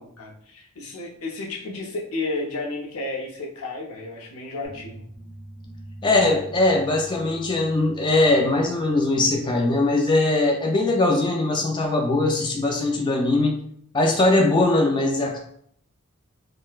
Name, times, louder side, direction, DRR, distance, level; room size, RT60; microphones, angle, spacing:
voice 1, 0.0-5.1, left 2 dB, 85° left, 0 dB, 0.7 m, -32 dB
sound 1, 4.6-9.6, right 1 dB, 60° right, 1.3 m, -44 dB
voice 2, 6.0-13.6 13.9-15.4, left 2 dB, 20° left, 1 dB, 0.3 m, -21 dB
4.1 x 2.0 x 2.3 m, 0.65 s
head